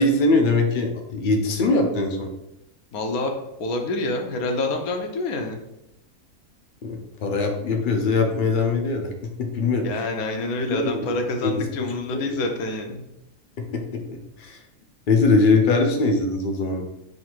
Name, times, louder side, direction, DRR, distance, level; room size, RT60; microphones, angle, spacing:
voice 1, 0.0-2.3 6.8-9.1 9.4-9.9 10.7-11.1 11.4-12.4 13.6-14.6 15.1-16.8, left 3 dB, 65° left, 4 dB, 0.5 m, -22 dB
voice 2, 2.9-3.3 3.6-5.6 9.8-13.0, left 2 dB, 85° left, 4 dB, 1.1 m, -27 dB
3.8 x 2.5 x 4.4 m, 0.88 s
omnidirectional pair, 1.5 m